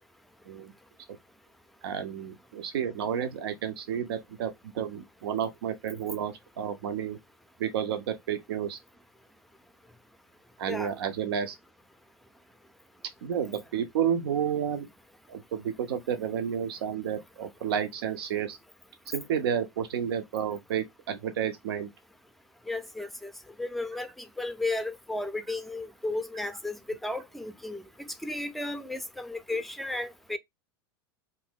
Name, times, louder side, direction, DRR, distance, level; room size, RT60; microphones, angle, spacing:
voice 1, 1.8-7.2 7.6-8.8 10.6-11.5 13.2-14.9 15.3-18.6 19.1-21.9, right 8 dB, 75° right, 0.6 m, -31 dB
voice 2, 22.7-23.3 23.6-30.4, left 2 dB, ahead, 0.5 m, -34 dB
2.6 x 2.6 x 3.5 m
hypercardioid pair, 95°, 13 cm